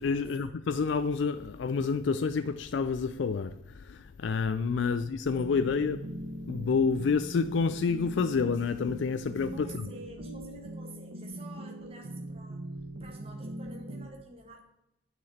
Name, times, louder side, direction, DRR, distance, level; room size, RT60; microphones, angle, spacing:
voice 1, 0.0-6.2 6.5-9.8, left 5 dB, 75° left, 0.4 m, -29 dB
voice 2, 4.9-5.3 9.5-12.7 13.0-14.6, right 2 dB, 30° right, 1.6 m, -49 dB
sound 1, 5.3-14.1, right 1 dB, 60° right, 1.1 m, -41 dB
9.3 x 5.8 x 4.2 m
head